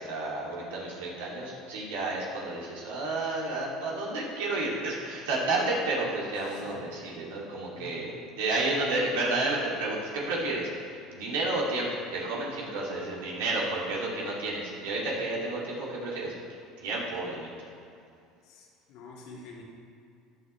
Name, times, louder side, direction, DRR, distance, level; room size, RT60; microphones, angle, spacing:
voice 1, 0.0-16.3 16.8-17.5, right 2 dB, 80° right, -4 dB, 3.0 m, -31 dB
voice 2, 6.4-8.2 18.4-19.6, left 2 dB, 70° left, -3 dB, 2.3 m, -48 dB
14.0 x 9.3 x 3.4 m, 2.4 s
hypercardioid pair, 80°, 0 cm